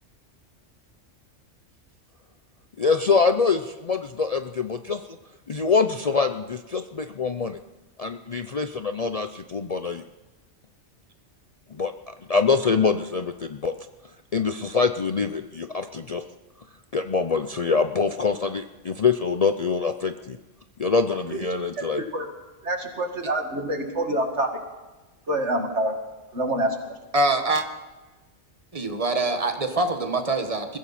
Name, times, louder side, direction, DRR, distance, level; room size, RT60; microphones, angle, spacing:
voice 1, 2.8-5.0 5.5-7.6 8.0-10.0 11.7-13.7 14.3-16.2 16.9-20.4 20.8-22.0, left 5 dB, 40° left, 8 dB, 0.6 m, -24 dB
voice 2, 22.0-22.3 22.6-24.5 25.3-25.9 26.3-26.8, right 1 dB, 65° right, 3 dB, 2.5 m, -26 dB
voice 3, 27.1-27.6 28.7-30.8, right 2 dB, 30° right, 6 dB, 1.6 m, -24 dB
22.0 x 15.5 x 4.3 m, 1.1 s
omnidirectional pair, 1.2 m